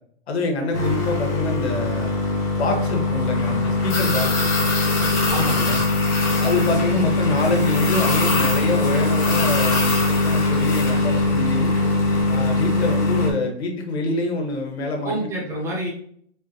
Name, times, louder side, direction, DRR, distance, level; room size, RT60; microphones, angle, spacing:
voice 1, 0.3-2.2 2.6-4.5 6.4-11.7 12.3-15.1, left 2 dB, 70° left, 2 dB, 1.7 m, -26 dB
sound 1, 0.7-13.3, left 3 dB, 15° left, 0.5 m, -21 dB
voice 2, 5.2-5.8 15.0-15.9, right 1 dB, 10° right, -3 dB, 0.9 m, -27 dB
4.4 x 4.0 x 2.9 m, 0.62 s
hypercardioid pair, 165°, 34 cm